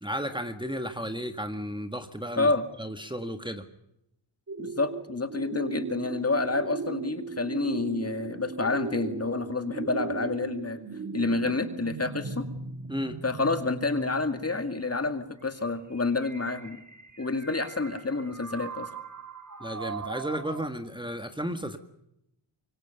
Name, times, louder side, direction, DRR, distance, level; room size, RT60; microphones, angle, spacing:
voice 1, 0.0-2.5 2.8-3.6 12.9-13.2 19.6-21.8, equal, 10° right, 6 dB, 1.7 m, -33 dB
sound 1, 4.5-20.7, right 4 dB, 35° right, 1.7 m, -38 dB
voice 2, 4.6-10.8 11.1-12.4 13.2-16.8 17.2-18.9, left 3 dB, 30° left, 8 dB, 2.2 m, -28 dB
25.5 x 23.5 x 6.9 m, 0.80 s
wide cardioid pair, 95°, 49 cm